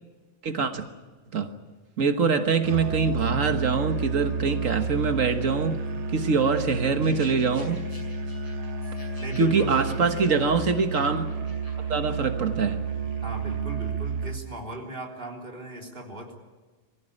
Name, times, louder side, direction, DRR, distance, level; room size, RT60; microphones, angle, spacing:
voice 1, 0.4-0.9 1.3-1.5 2.0-5.8 6.1-7.8 9.4-11.2 11.9-12.8, right 5 dB, 80° right, 7 dB, 1.7 m, -24 dB
Musical instrument, 2.6-14.5, right 5 dB, 60° right, 1.6 m, -31 dB
sound 1, 7.0-12.3, equal, 25° left, 7.7 m, -51 dB
voice 2, 9.2-10.0 13.2-16.3, right 1 dB, 45° right, 0 dB, 3.9 m, -37 dB
24.0 x 16.0 x 10.0 m, 1.3 s
omnidirectional pair, 1.3 m